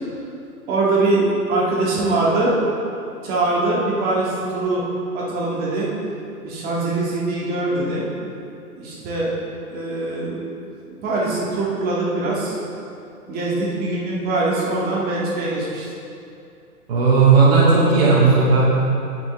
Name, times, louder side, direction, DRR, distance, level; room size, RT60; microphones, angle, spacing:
voice 1, 0.7-1.2 1.5-2.5 3.2-4.8 5.1-5.9 6.4-8.1 8.8-9.3 9.7-10.4 10.9-12.6 13.3-15.8, right 2 dB, 20° right, -5 dB, 1.9 m, -22 dB
voice 2, 16.9-18.6, right 4 dB, 40° right, -6 dB, 2.2 m, -14 dB
10.5 x 8.8 x 3.2 m, 2.6 s
figure-of-eight pair, 120°, 46 cm